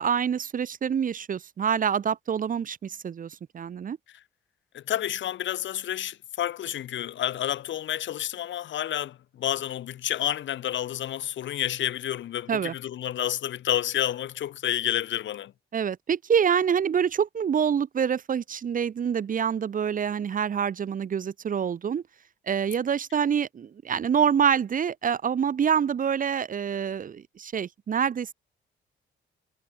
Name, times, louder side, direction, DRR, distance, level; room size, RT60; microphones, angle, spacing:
voice 1, 0.0-4.0 12.5-12.7 15.7-22.0 22.5-28.3, right 7 dB, 45° right, 0.9 m, -26 dB
voice 2, 4.7-15.5, left 11 dB, 70° left, 1.9 m, -30 dB
cardioid pair, 90°, 20 cm